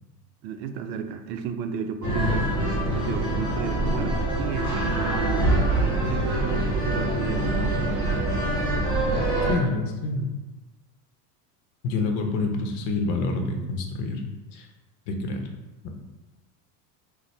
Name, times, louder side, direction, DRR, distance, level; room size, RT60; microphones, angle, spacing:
voice 1, 0.4-7.8, right 7 dB, 85° right, 8 dB, 0.6 m, -33 dB
sound 1, 2.0-9.5, right 1 dB, 10° left, 1.4 m, -24 dB
voice 2, 9.5-10.3 11.8-14.2 14.5-14.7 15.1-15.5 15.8-15.9, left 3 dB, 55° left, 3 dB, 0.7 m, -27 dB
4.1 x 2.1 x 3.1 m, 1.1 s
supercardioid pair, 130°, 49 cm